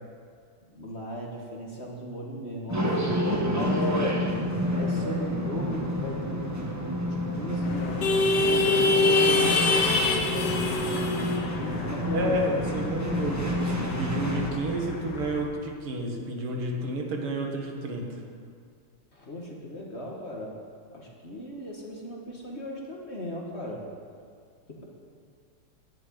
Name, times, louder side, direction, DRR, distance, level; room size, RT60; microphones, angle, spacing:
voice 1, 0.7-2.9 3.5-4.2 4.7-9.5 10.3-12.4 19.1-20.5 20.9-23.8 24.7-24.8, left 1 dB, 35° left, -2 dB, 1.4 m, -36 dB
sound 1, 2.7-14.5, equal, 15° right, 0.7 m, -29 dB
sound 2, 7.6-15.5, left 3 dB, 60° left, 1.6 m, -26 dB
voice 2, 12.1-18.2, right 1 dB, 85° right, 1 dB, 2.5 m, -31 dB
10.5 x 7.5 x 9.3 m, 2.1 s
omnidirectional pair, 2.4 m